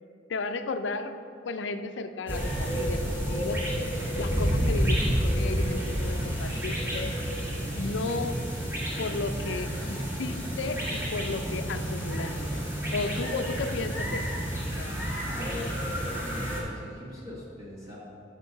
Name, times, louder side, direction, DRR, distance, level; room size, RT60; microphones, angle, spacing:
voice 1, 0.3-1.2 1.4-3.7 4.2-7.1 7.7-8.4 9.0-14.3 14.7-15.1, left 3 dB, 75° left, 9 dB, 0.5 m, -34 dB
sound 1, 2.3-16.6, equal, 15° right, 1.6 m, -30 dB
voice 2, 15.3-18.0, left 1 dB, 35° right, -8 dB, 1.5 m, -41 dB
6.6 x 5.2 x 5.3 m, 2.6 s
head